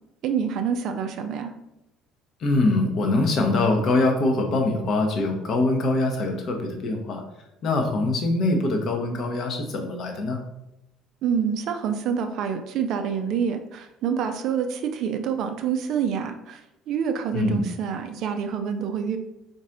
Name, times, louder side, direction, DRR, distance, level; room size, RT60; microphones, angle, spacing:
voice 1, 0.2-1.5 11.2-16.6 16.9-19.2, right 7 dB, 50° right, 7 dB, 0.4 m, -27 dB
voice 2, 2.4-7.2 7.6-10.4 17.3-17.6, left 2 dB, 45° left, 3 dB, 0.7 m, -23 dB
4.1 x 2.6 x 3.7 m, 0.88 s
figure-of-eight pair, 55°, 0 cm